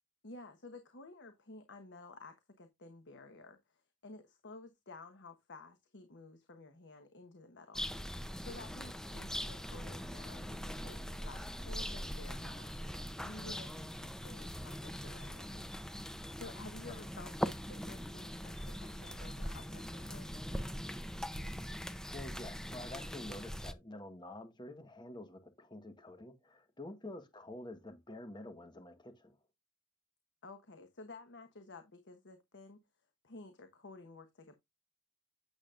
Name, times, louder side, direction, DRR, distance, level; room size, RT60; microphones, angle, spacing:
voice 1, 0.2-7.8 8.4-12.7 13.2-15.7 16.3-20.4 30.4-32.8 33.2-34.5, left 3 dB, 55° left, 1.1 m, -53 dB
sound 1, 7.7-23.7, equal, 5° left, 0.5 m, -42 dB
voice 2, 21.8-29.4, left 1 dB, 20° left, 1.2 m, -48 dB
8.9 x 7.2 x 2.5 m
head